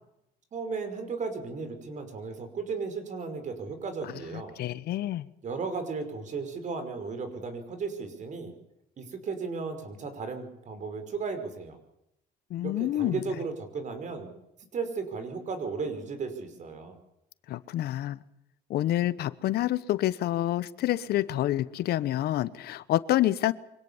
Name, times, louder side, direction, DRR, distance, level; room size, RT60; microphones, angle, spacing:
voice 1, 0.5-4.5 5.4-8.5 9.0-11.8 12.6-14.3 14.7-17.0, right 4 dB, 45° right, 5.2 m, -35 dB
voice 2, 4.6-5.3 12.5-13.2 17.5-18.2 18.7-23.5, left 14 dB, 70° left, 1.1 m, -27 dB
24.5 x 18.0 x 7.2 m
cardioid pair, 110°, 17 cm